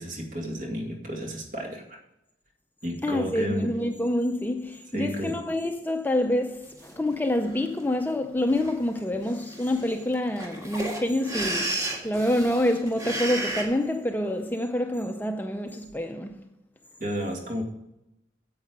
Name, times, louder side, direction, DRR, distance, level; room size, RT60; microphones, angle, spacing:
voice 1, 0.0-2.0 2.8-3.7 4.9-5.4 17.0-17.6, equal, 50° right, 2.2 m, -32 dB
voice 2, 3.0-16.4, left 1 dB, 10° left, 0.5 m, -27 dB
sound 1, 6.8-6.9 7.4-7.8 8.5-8.7 9.0-9.1 9.2-13.6, right 2 dB, 20° right, 1.9 m, -32 dB
9.5 x 7.7 x 5.2 m
head